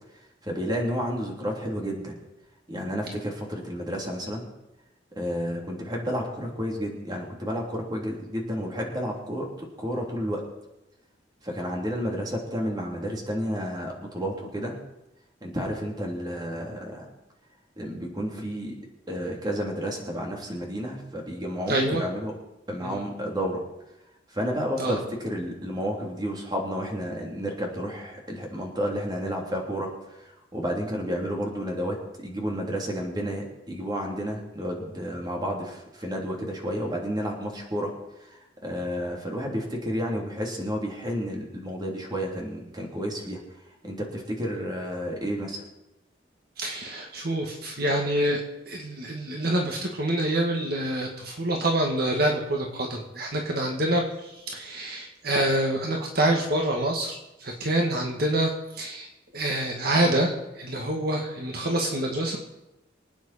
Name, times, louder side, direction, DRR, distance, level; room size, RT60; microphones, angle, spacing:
voice 1, 0.4-2.2 2.7-4.4 5.1-10.4 11.4-14.8 15.4-17.1 17.8-18.8 19.1-22.3 22.7-23.6 24.3-29.9 30.2-37.9 38.2-38.3 38.6-43.4 43.8-45.6, equal, 25° right, 0 dB, 3.1 m, -31 dB
voice 2, 21.7-22.0 22.8-23.0 24.8-25.0 46.6-48.4 48.7-59.1 59.3-62.4, right 1 dB, 55° right, 0 dB, 1.8 m, -26 dB
24.5 x 9.4 x 4.3 m, 0.92 s
head